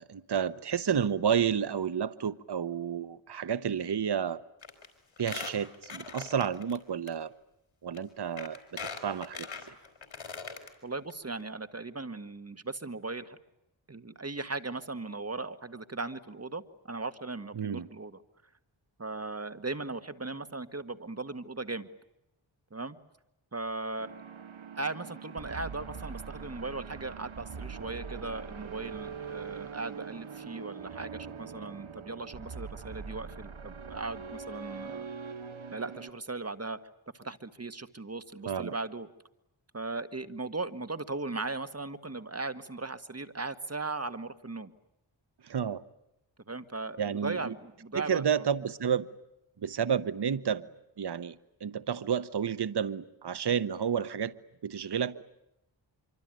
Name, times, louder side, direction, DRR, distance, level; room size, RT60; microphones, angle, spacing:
voice 1, 0.0-4.4 5.2-7.3 7.8-9.5 17.6-17.9 38.5-38.7 45.4-45.8 47.0-47.5 47.9-49.1 49.6-50.6 51.0-51.3 51.6-54.3 54.6-55.2, right 7 dB, 60° right, 1.0 m, -30 dB
Squeak, 4.6-4.9 5.2-6.8 7.1-7.2 7.9-8.0 8.4-10.7 11.1-11.2 11.4-11.5, left 5 dB, 80° left, 4.3 m, -41 dB
voice 2, 10.8-13.4 13.9-18.2 19.0-21.9 22.7-23.0 23.5-24.1 24.8-35.1 35.7-36.8 37.1-39.1 39.7-44.7 46.5-48.4, right 3 dB, 30° right, 1.8 m, -38 dB
sound 1, 24.0-36.1, right 6 dB, 85° right, 1.8 m, -42 dB
25.5 x 24.5 x 9.2 m
wide cardioid pair, 65°, 46 cm